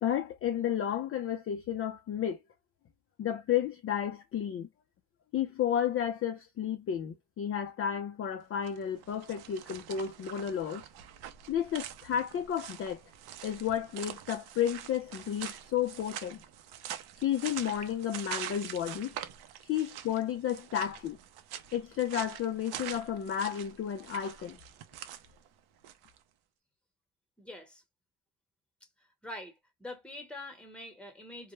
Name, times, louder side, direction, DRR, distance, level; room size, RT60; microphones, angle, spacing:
voice 1, 0.0-2.4 3.2-4.7 5.3-10.8 11.5-13.0 13.4-16.4 17.2-19.1 19.6-21.2 21.7-24.6, left 9 dB, 35° left, 0.4 m, -32 dB
sound 1, 8.5-26.2, right 11 dB, 70° right, 0.6 m, -45 dB
voice 2, 27.4-27.8 29.2-31.5, left 1 dB, 5° left, 1.0 m, -45 dB
2.2 x 2.1 x 3.0 m
cardioid pair, 110°, 39 cm